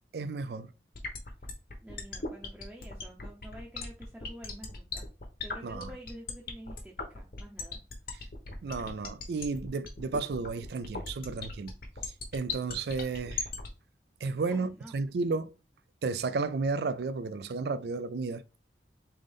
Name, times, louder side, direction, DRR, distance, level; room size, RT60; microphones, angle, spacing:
voice 1, 0.1-0.7 5.6-5.9 8.6-11.7 12.0-13.5 14.2-15.5 16.0-18.4, right 4 dB, 65° right, 0.4 m, -33 dB
sound 1, 0.9-13.7, left 4 dB, 55° left, 1.0 m, -37 dB
voice 2, 1.8-5.1 5.4-7.8 14.4-14.9, equal, 10° right, 0.6 m, -48 dB
3.8 x 3.5 x 3.6 m
head